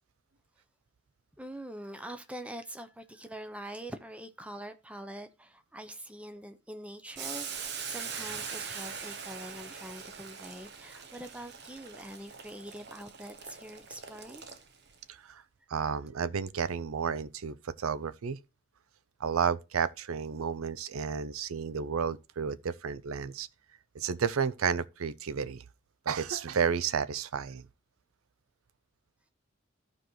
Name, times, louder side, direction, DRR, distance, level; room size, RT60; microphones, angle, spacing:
voice 1, 1.4-14.4, right 1 dB, 5° right, 0.6 m, -44 dB
Boiling, 7.2-14.9, right 6 dB, 50° right, 0.9 m, -42 dB
voice 2, 15.7-18.4 19.2-23.5 23.9-25.6 26.1-27.6, right 6 dB, 90° right, 0.5 m, -32 dB
14.0 x 4.9 x 3.1 m
head